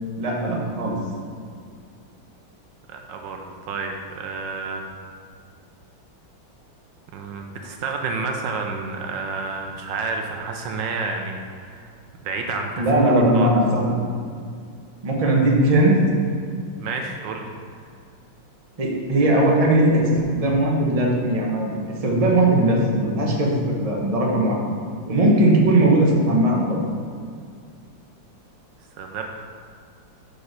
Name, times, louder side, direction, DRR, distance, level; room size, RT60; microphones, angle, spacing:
voice 1, 0.2-1.0 12.8-14.0 15.0-16.0 18.8-21.7 22.0-23.5 23.8-24.7 25.1-26.8, right 1 dB, 25° right, -2 dB, 1.0 m, -19 dB
voice 2, 2.9-4.8 7.1-11.8 12.2-12.8 13.3-13.5 16.8-17.5 29.0-29.2, right 4 dB, 75° right, 3 dB, 1.3 m, -30 dB
6.0 x 5.1 x 6.5 m, 2.3 s
omnidirectional pair, 2.1 m